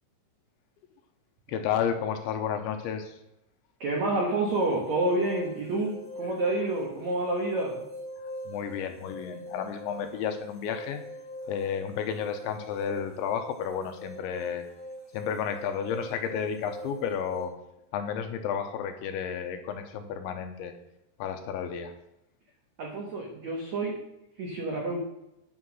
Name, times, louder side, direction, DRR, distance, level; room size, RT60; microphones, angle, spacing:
voice 1, 1.5-3.2 8.5-11.0 11.5-14.6 15.1-17.5 17.9-20.7 21.2-21.9, left 8 dB, 80° left, 6 dB, 3.1 m, -32 dB
voice 2, 3.8-7.8 22.8-23.9 24.4-25.0, right 2 dB, 75° right, -1 dB, 1.6 m, -29 dB
sound 1, 4.4-17.5, equal, 10° right, 1.5 m, -42 dB
9.5 x 5.8 x 6.4 m, 0.85 s
omnidirectional pair, 5.5 m